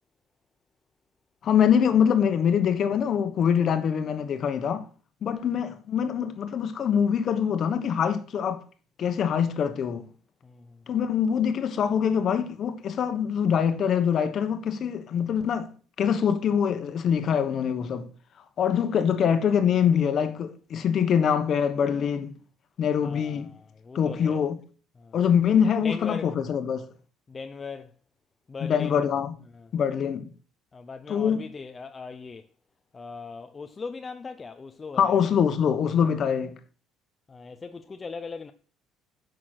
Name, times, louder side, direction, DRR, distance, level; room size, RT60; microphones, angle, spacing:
voice 1, 1.4-4.9 5.2-8.6 9.0-10.1 10.9-15.7 16.0-18.1 18.6-22.3 22.8-23.5 23.9-24.6 25.1-26.9 28.6-29.4 29.7-30.3 31.1-31.5 35.0-36.6, left 8 dB, 40° left, 1.1 m, -24 dB
voice 2, 10.4-10.8 23.0-24.4 25.0-25.2 25.8-26.3 27.3-27.9 28.5-29.1 29.5-29.7 30.7-32.5 32.9-35.2 37.3-38.5, left 4 dB, 20° left, 0.5 m, -39 dB
9.8 x 5.9 x 6.1 m
cardioid pair, 160°, 0 cm